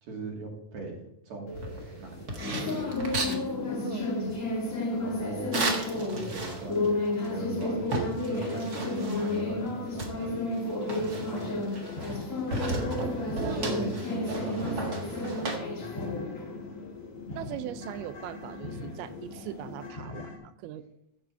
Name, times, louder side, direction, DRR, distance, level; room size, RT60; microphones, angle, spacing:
voice 1, 0.0-2.3 2.7-3.0 5.0-5.6 6.1-7.9 8.3-10.5 10.9-11.5 13.4-15.9, right 3 dB, 50° right, -1 dB, 3.6 m, -40 dB
sound 1, 1.5-19.9, left 2 dB, 70° left, 0.7 m, -33 dB
sound 2, 1.5-3.4 5.5-6.9 7.2-7.3 7.6-9.5 10.0-12.2 12.5-15.6, right 2 dB, 65° right, 0.9 m, -35 dB
voice 2, 3.8-4.3 13.4-13.6 17.3-20.9, right 12 dB, 85° right, 12 dB, 2.6 m, -40 dB
sound 3, 11.3-20.4, left 3 dB, 40° left, 3.1 m, -42 dB
15.0 x 6.3 x 4.6 m, 0.80 s
omnidirectional pair, 4.5 m